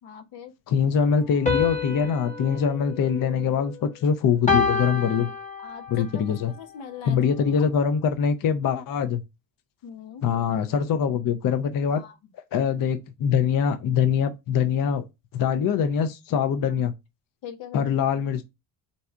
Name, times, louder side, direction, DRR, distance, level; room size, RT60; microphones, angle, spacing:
voice 1, 0.0-0.5 5.6-7.2 7.6-7.7 9.8-10.2 11.9-12.2 17.4-17.9, left 7 dB, 75° left, 1.1 m, -41 dB
voice 2, 0.7-5.3 5.9-6.5 7.1-9.2 10.2-12.0 12.5-15.0 15.3-16.9 17.7-18.4, left 7 dB, 45° left, 0.6 m, -23 dB
sound 1, 1.5-3.9 4.5-6.0, left 4 dB, 15° left, 0.9 m, -28 dB
4.1 x 2.4 x 4.4 m
cardioid pair, 80°, 46 cm